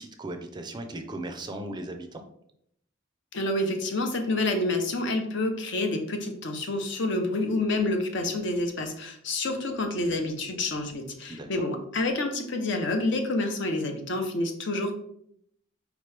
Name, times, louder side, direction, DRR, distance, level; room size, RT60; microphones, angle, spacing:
voice 1, 0.0-2.2 11.3-11.5, right 1 dB, 20° right, 6 dB, 0.4 m, -37 dB
voice 2, 3.3-14.9, left 2 dB, 65° left, 5 dB, 0.7 m, -28 dB
4.5 x 3.0 x 3.3 m, 0.72 s
head